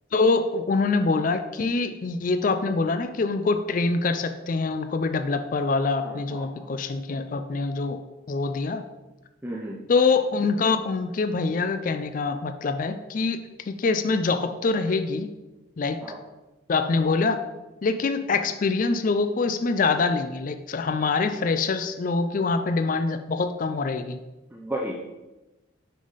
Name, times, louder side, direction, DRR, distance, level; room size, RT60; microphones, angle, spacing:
voice 1, 0.1-8.0 8.3-8.9 9.9-15.3 15.8-16.0 16.7-17.4 17.8-24.2, left 4 dB, 40° left, 9 dB, 0.4 m, -25 dB
voice 2, 6.0-6.7 9.4-9.9 16.0-16.2 24.5-25.0, right 1 dB, 10° right, -3 dB, 0.5 m, -34 dB
6.3 x 5.5 x 4.0 m, 1.1 s
head